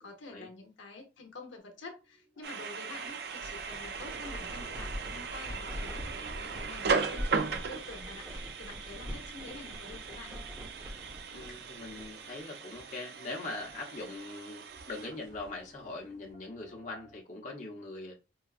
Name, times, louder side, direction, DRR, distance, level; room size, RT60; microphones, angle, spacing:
voice 1, 0.0-6.0 6.4-10.4, left 3 dB, 85° left, 0.8 m, -48 dB
sound 1, 1.6-17.2, right 2 dB, 40° right, 1.4 m, -63 dB
sound 2, 2.4-15.6, right 5 dB, 55° right, 0.4 m, -38 dB
sound 3, 2.9-12.5 12.7-12.8 13.4-13.9 14.5-15.6, equal, 20° right, 0.9 m, -44 dB
voice 2, 11.3-18.1, left 2 dB, 40° left, 0.8 m, -42 dB
4.7 x 2.2 x 2.3 m
head